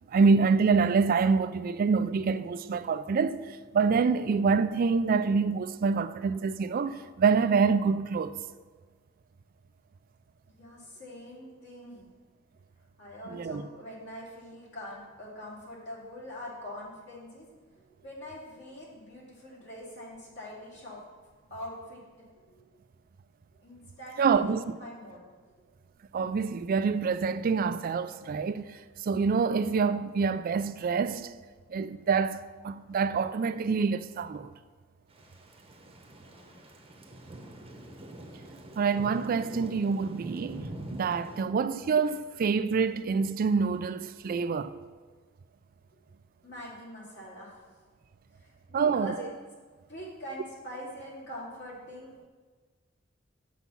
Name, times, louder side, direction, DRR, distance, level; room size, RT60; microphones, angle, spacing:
voice 1, 0.1-8.4 13.3-13.6 24.2-24.6 26.1-31.3 31.7-34.5 38.8-44.7 48.7-49.1, right 5 dB, 45° right, 0.3 m, -26 dB
voice 2, 10.5-12.1 13.0-17.5 17.7-21.0 21.5-22.0 22.3-22.7 23.6-25.6 36.0-36.6 46.4-47.6 48.3-49.3 49.9-52.3, equal, 60° left, 2.5 m, -44 dB
Thunder / Rain, 35.1-41.4, right 1 dB, 30° right, 0.9 m, -44 dB
7.0 x 6.1 x 5.5 m
head